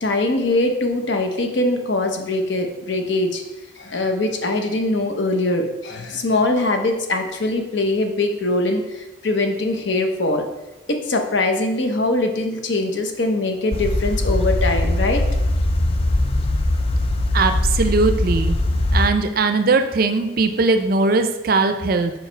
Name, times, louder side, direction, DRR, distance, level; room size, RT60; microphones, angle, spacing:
voice 1, 0.0-3.4 3.8-10.5 10.9-15.3, left 2 dB, 60° left, 5 dB, 0.7 m, -22 dB
sound 1, 13.7-19.1, left 1 dB, 30° left, 0.3 m, -20 dB
voice 2, 17.3-18.6 18.9-22.1, right 3 dB, 45° right, 8 dB, 0.4 m, -19 dB
5.3 x 4.7 x 4.4 m, 1.0 s
head